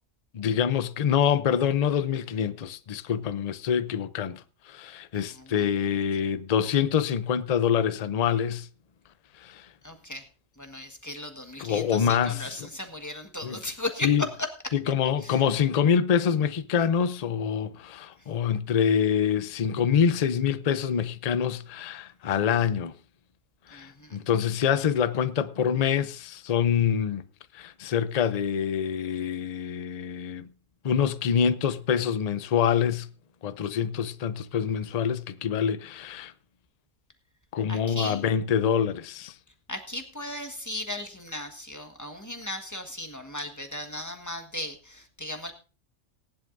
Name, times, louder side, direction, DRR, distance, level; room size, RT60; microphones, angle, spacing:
voice 1, 0.3-8.7 9.4-9.7 11.6-12.6 13.4-13.6 14.0-14.3 14.7-22.9 23.7-27.2 27.5-30.5 30.8-33.1 33.4-36.3 37.5-39.3, left 8 dB, 45° left, 0.6 m, -26 dB
voice 2, 5.3-5.7 9.8-10.3 10.6-14.5 15.2-15.4 23.7-24.2 37.7-38.2 39.7-45.5, left 1 dB, 15° left, 1.5 m, -36 dB
19.0 x 11.0 x 2.6 m
omnidirectional pair, 1.3 m